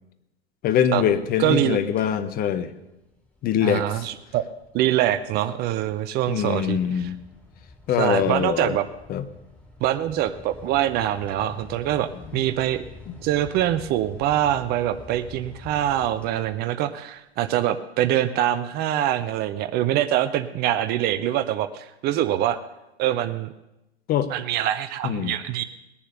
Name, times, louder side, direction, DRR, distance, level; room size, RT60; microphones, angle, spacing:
voice 1, 0.6-2.7 3.4-4.0 6.3-7.2 7.9-8.8 9.1-9.2 12.3-12.4 24.1-24.3 25.0-25.4, left 9 dB, 30° left, 12 dB, 0.9 m, -23 dB
sound 1, 1.1-1.6 1.9-2.2 2.7-17.0, left 2 dB, 5° left, 2.5 m, -47 dB
voice 2, 1.4-1.8 3.6-4.5 4.7-7.1 8.0-8.9 9.8-12.8 13.2-22.6 23.0-23.5 24.3-25.6, right 12 dB, 30° right, 13 dB, 0.6 m, -24 dB
20.0 x 7.1 x 6.7 m, 0.93 s
figure-of-eight pair, 100°, 32 cm